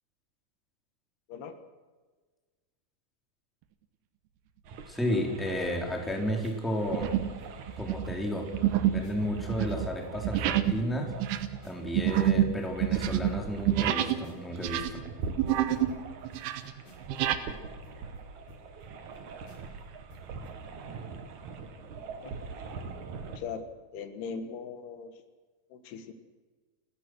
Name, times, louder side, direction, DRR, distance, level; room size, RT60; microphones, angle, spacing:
sound 1, 4.6-23.4, right 4 dB, 55° right, 2.6 m, -44 dB
voice 1, 4.9-7.1 7.8-8.5 8.9-11.1 11.6-15.0, equal, ahead, 1 dB, 3.1 m, -32 dB
sound 2, 5.2-5.6 6.1-6.3 6.9-7.4 7.7-14.2 14.5-16.0 16.2-17.4, right 12 dB, 90° right, 3.1 m, -28 dB
sound 3, 6.3-8.4 8.7-8.8 9.0-9.4 9.7-12.0 12.3-12.4 12.6-14.6 14.9-15.0 15.2-19.2 19.5-19.8 20.1-20.6, equal, 60° left, 8.1 m, -55 dB
voice 2, 23.9-25.1 25.7-26.1, left 6 dB, 85° left, 9 dB, 3.7 m, -39 dB
29.0 x 14.5 x 6.3 m, 1.4 s
omnidirectional pair, 4.5 m